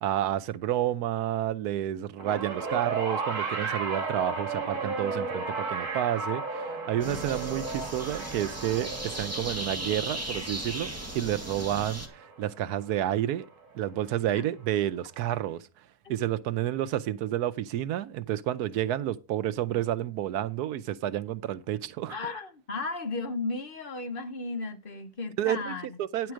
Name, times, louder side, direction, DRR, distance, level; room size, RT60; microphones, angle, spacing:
voice 1, 0.0-10.9 11.1-13.5 13.7-15.7 16.1-22.2 25.4-25.7 26.0-26.3, right 12 dB, 90° right, 1.2 m, -30 dB
sound 1, 2.2-12.6 13.7-13.8, right 4 dB, 55° right, 2.0 m, -34 dB
voice 2, 7.0-7.6 14.3-14.4 16.0-16.2 22.1-26.0 26.2-26.3, left 3 dB, 40° left, 1.3 m, -35 dB
sound 2, 7.0-12.1, right 1 dB, 10° right, 1.6 m, -37 dB
10.5 x 4.6 x 6.3 m
omnidirectional pair, 1.6 m